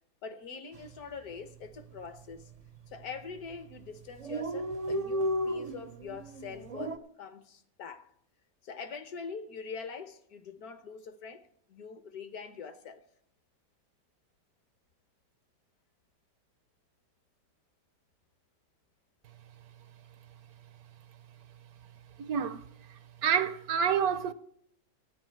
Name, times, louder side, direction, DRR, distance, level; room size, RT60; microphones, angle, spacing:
voice 1, 0.2-2.5 2.9-8.1 8.6-11.4 11.7-13.0, left 5 dB, 65° left, 1.4 m, -44 dB
Dog, 0.7-1.0 1.3-1.4 1.6-2.3 2.9-3.2 3.5-3.6 3.8-7.0, equal, 50° right, 0.4 m, -34 dB
voice 2, 22.2-22.6 23.2-24.3, right 7 dB, 70° right, 1.0 m, -28 dB
13.5 x 9.6 x 4.5 m
omnidirectional pair, 1.8 m